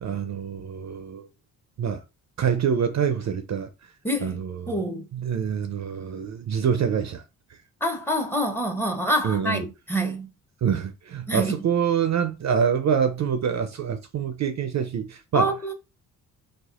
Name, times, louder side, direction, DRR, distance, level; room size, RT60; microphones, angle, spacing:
voice 1, 0.0-1.3 1.8-2.0 2.4-3.7 4.2-4.8 5.1-7.2 9.2-9.6 10.6-15.5, right 7 dB, 45° right, 0.5 m, -26 dB
voice 2, 4.0-4.4 4.7-5.0 7.8-10.3 11.3-11.5 15.3-15.7, equal, 5° left, 0.7 m, -26 dB
3.4 x 2.1 x 2.4 m
supercardioid pair, 50°, 41 cm